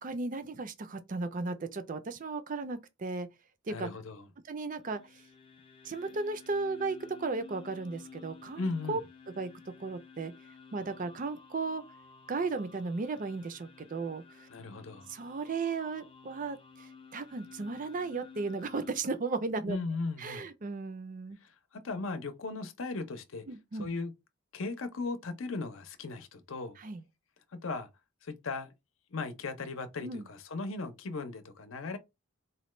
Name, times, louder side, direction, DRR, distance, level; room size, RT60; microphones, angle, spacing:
voice 1, 0.0-3.3 3.7-3.9 4.5-5.0 5.8-9.0 9.4-10.3 10.7-11.8 12.3-14.5 15.1-19.8 20.2-21.4 23.5-23.9 26.8-27.0 30.0-30.3, right 3 dB, 40° right, 0.5 m, -35 dB
voice 2, 3.7-4.3 8.6-9.0 14.5-15.1 19.6-20.5 21.4-21.5 21.8-23.4 23.8-24.1 24.5-26.8 27.6-27.9 28.2-28.7 29.1-32.0, left 3 dB, 70° left, 0.7 m, -37 dB
sound 1, 4.7-19.0, left 5 dB, 25° left, 0.5 m, -53 dB
4.2 x 2.2 x 3.1 m
head